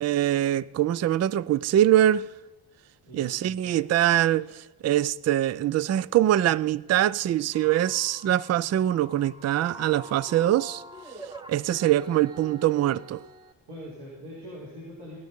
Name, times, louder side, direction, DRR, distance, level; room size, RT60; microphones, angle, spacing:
voice 1, 0.0-2.3 3.1-4.5 4.8-10.8 11.5-13.2, right 12 dB, 35° right, 0.4 m, -23 dB
voice 2, 3.0-3.8 4.4-4.5 13.7-15.2, equal, 55° right, 4.4 m, -43 dB
sound 1, 7.5-13.5, equal, 10° right, 1.1 m, -46 dB
19.5 x 6.5 x 5.3 m
supercardioid pair, 60°, 46 cm